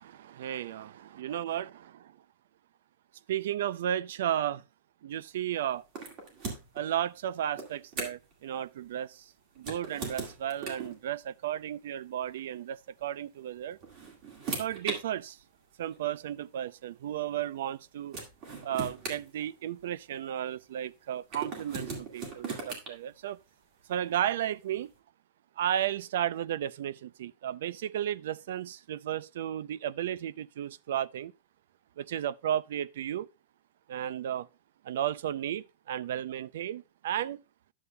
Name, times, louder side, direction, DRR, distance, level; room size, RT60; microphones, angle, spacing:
voice 1, 0.0-2.1 3.3-4.6 5.0-5.8 6.7-13.8 14.5-15.4 15.8-18.1 18.6-23.4 23.9-24.9 25.6-31.3 32.0-33.3 33.9-34.5 34.8-37.4, right 11 dB, 65° right, 0.3 m, -34 dB
sound 1, 5.9-6.8 7.6-8.3 9.6-11.0 12.2-12.4 13.6-15.0 16.0-16.1 17.7-17.8 18.1-20.0 21.3-22.9, right 4 dB, 30° right, 2.0 m, -38 dB
11.0 x 7.0 x 2.2 m
supercardioid pair, 180°, 0 cm